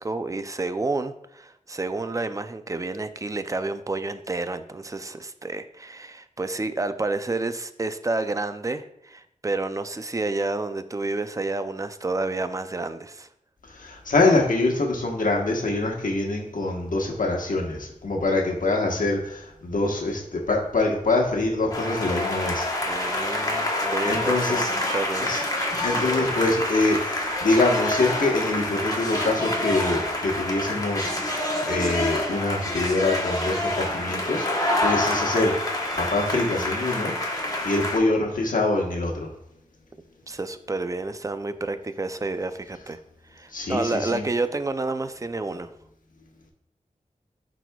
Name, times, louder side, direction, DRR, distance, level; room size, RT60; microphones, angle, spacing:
voice 1, 0.0-13.3 22.8-25.3 40.3-43.0 43.3-45.7, right 3 dB, 25° right, 11 dB, 0.4 m, -30 dB
voice 2, 13.8-22.7 24.1-24.7 25.3-25.4 25.8-31.1 31.7-34.4 34.8-35.5 36.0-37.1 37.6-39.3 43.5-44.2, left 2 dB, 75° left, 0 dB, 1.2 m, -24 dB
sound 1, 21.7-38.0, left 1 dB, 25° left, 1.0 m, -27 dB
10.5 x 4.1 x 2.3 m, 0.75 s
wide cardioid pair, 75°, 14 cm